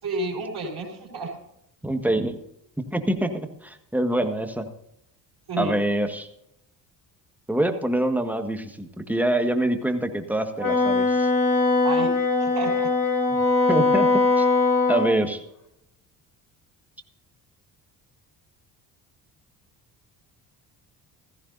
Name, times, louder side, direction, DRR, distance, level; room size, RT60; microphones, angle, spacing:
voice 1, 0.0-1.4 5.5-5.8 11.8-12.1 12.4-12.9, right 3 dB, 55° right, -7 dB, 4.7 m, -30 dB
voice 2, 1.8-2.4 2.9-3.3 3.6-4.7 5.6-6.3 7.5-11.3 13.7-14.1 14.4-14.5 14.9-15.4, right 1 dB, 5° right, 6 dB, 1.6 m, -25 dB
Wind instrument woodwind instrument, 10.6-15.1, left 3 dB, 40° left, 3.7 m, -21 dB
15.5 x 14.5 x 2.7 m, 0.79 s
hypercardioid pair, 55°, 49 cm